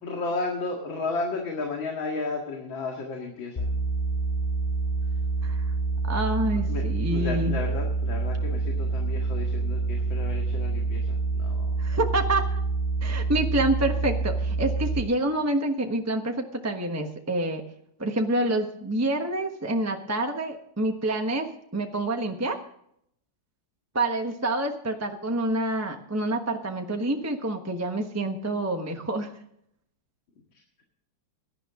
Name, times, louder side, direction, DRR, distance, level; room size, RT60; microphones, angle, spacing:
voice 1, 0.0-3.7 6.5-11.7, left 3 dB, 85° left, 1 dB, 2.8 m, -33 dB
sound 1, 3.6-15.0, right 3 dB, 20° left, 1.7 m, -27 dB
voice 2, 6.0-7.6 11.8-12.6 13.0-17.6 18.0-22.6 23.9-29.3, right 1 dB, 10° right, 3 dB, 0.9 m, -27 dB
18.0 x 11.5 x 3.7 m, 0.70 s
omnidirectional pair, 2.1 m